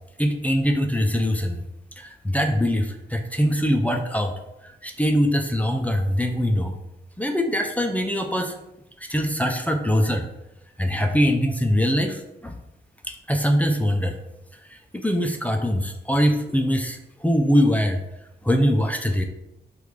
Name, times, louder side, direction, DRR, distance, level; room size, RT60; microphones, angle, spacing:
voice 1, 0.2-1.6 2.0-4.4 4.8-6.7 7.2-8.5 9.1-10.3 10.8-12.5 13.3-14.2 14.7-18.0 18.4-19.2, equal, 10° left, 4 dB, 0.3 m, -22 dB
3.2 x 2.3 x 3.6 m, 0.88 s
wide cardioid pair, 100°, 18 cm